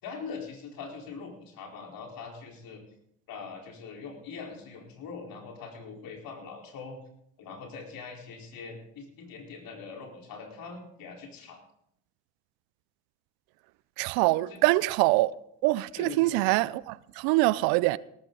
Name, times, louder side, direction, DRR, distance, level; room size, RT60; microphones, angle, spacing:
voice 1, 0.0-2.8 3.3-7.0 7.4-11.6 14.5-14.6 16.0-16.3, left 5 dB, 55° left, 4.4 m, -42 dB
voice 2, 14.0-15.3 15.6-18.0, right 20 dB, 65° right, 0.6 m, -24 dB
17.5 x 14.0 x 4.0 m
hypercardioid pair, 65°, 40 cm